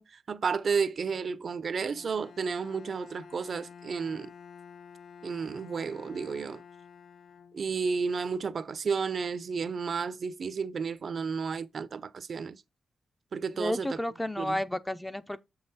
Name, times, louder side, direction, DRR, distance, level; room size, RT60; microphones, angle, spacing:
voice 1, 0.0-4.3 5.2-6.6 7.5-12.6 13.3-14.0 14.4-14.6, right 5 dB, 55° right, 0.6 m, -32 dB
Bowed string instrument, 1.8-8.0, left 6 dB, 70° left, 0.7 m, -50 dB
voice 2, 13.5-15.4, left 1 dB, 5° left, 0.7 m, -32 dB
7.2 x 5.6 x 4.1 m
cardioid pair, 105°, 0 cm